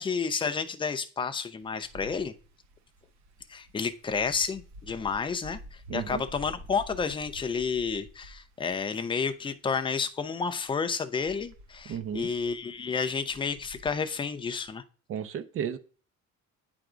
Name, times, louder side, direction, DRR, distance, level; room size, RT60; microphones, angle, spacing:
voice 1, 0.0-2.3 3.5-14.8, left 5 dB, 15° left, 8 dB, 0.5 m, -31 dB
Wind, 1.6-14.7, right 1 dB, 65° right, 1.2 m, -50 dB
voice 2, 5.9-6.2 11.9-12.3 15.1-15.8, right 8 dB, 45° right, 12 dB, 0.7 m, -33 dB
9.0 x 3.4 x 5.0 m, 0.38 s
cardioid pair, 165°, 30 cm